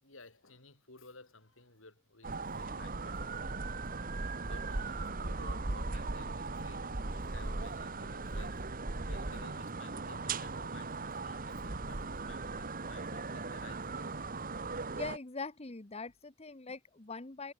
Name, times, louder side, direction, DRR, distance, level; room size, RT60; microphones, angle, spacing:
voice 1, 0.0-3.4 4.4-8.6 9.0-14.4, left 3 dB, 75° left, 6.8 m, -55 dB
sound 1, 2.2-15.2, right 3 dB, 45° right, 1.5 m, -38 dB
voice 2, 14.9-17.5, left 3 dB, 30° left, 1.1 m, -42 dB
head